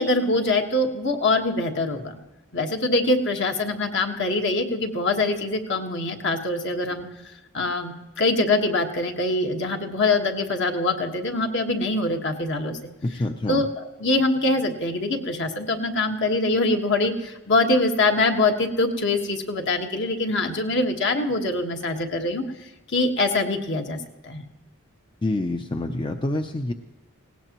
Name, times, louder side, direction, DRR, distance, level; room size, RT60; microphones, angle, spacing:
voice 1, 0.0-2.2 2.5-7.1 7.5-12.8 13.5-24.4, left 2 dB, 55° left, 4 dB, 1.4 m, -24 dB
voice 2, 13.0-13.6 25.2-26.7, left 2 dB, 20° left, 6 dB, 0.5 m, -27 dB
19.0 x 17.5 x 3.0 m, 1.1 s
head